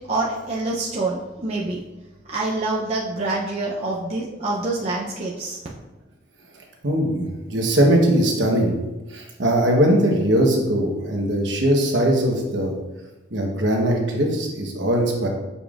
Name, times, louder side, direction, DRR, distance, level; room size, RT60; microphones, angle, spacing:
voice 1, 0.1-1.8 2.3-5.6, right 2 dB, 35° right, -4 dB, 0.6 m, -26 dB
voice 2, 6.8-8.7 9.1-12.8 13.3-15.3, right 1 dB, 60° right, 0 dB, 1.1 m, -20 dB
7.0 x 5.4 x 2.5 m, 1.1 s
head